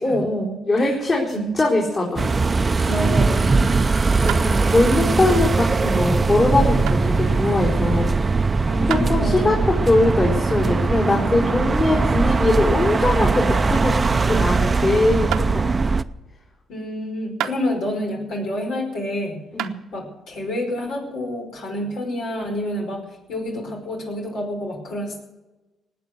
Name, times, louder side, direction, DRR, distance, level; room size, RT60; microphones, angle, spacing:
voice 1, 0.0-2.3 2.6-2.9 4.2-8.1 8.9-15.7 19.5-19.8, left 2 dB, 40° left, -4 dB, 4.4 m, -21 dB
sound 1, 0.8-2.9 4.3-4.5 6.9-7.0 8.9-9.2 12.4-13.7 14.1-14.4 15.3-15.5 17.4-18.0 18.6-19.1 19.6-19.8, right 10 dB, 85° right, 1.0 m, -32 dB
sound 2, 2.2-16.0, right 3 dB, 30° right, 0.6 m, -20 dB
voice 2, 2.8-3.7 8.6-9.6 16.7-19.4 19.9-25.2, left 1 dB, 75° left, 1 dB, 5.1 m, -28 dB
19.5 x 8.3 x 8.0 m, 1.1 s
cardioid pair, 90°, 0 cm